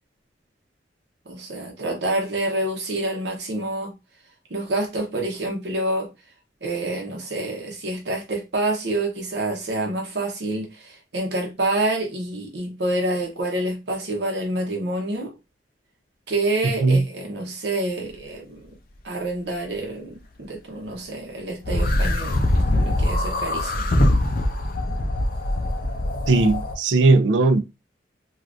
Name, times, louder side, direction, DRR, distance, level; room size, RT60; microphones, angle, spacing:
voice 1, 1.3-3.9 4.5-6.1 6.6-15.3 16.3-18.6 19.0-23.9, right 2 dB, 65° right, 0.9 m, -27 dB
sound 1, 21.6-26.8, left 1 dB, 50° left, 0.5 m, -22 dB
voice 2, 26.3-27.6, right 3 dB, 90° right, 0.4 m, -17 dB
3.4 x 2.5 x 2.5 m
head